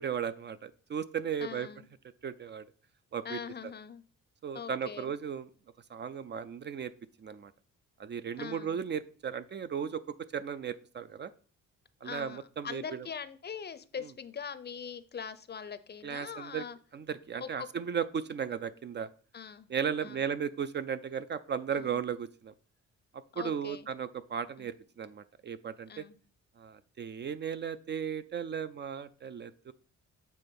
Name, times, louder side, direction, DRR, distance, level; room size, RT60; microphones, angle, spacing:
voice 1, 0.0-1.7 2.2-2.7 3.1-3.4 4.4-5.5 5.9-6.9 7.2-7.5 8.0-10.0 10.3-11.3 12.0-13.1 16.0-16.6 16.9-19.1 19.7-22.5 23.1-26.0 26.6-29.7, right 7 dB, 35° right, 13 dB, 0.4 m, -36 dB
voice 2, 1.4-1.9 3.2-4.0 4.5-5.1 8.4-8.8 12.0-16.8 17.4-17.7 19.3-19.7 20.0-20.3 21.7-22.0 23.3-23.9 24.6-24.7 25.9-26.2, left 7 dB, 35° left, 14 dB, 0.6 m, -42 dB
7.6 x 3.3 x 5.3 m, 0.40 s
cardioid pair, 90°, 30 cm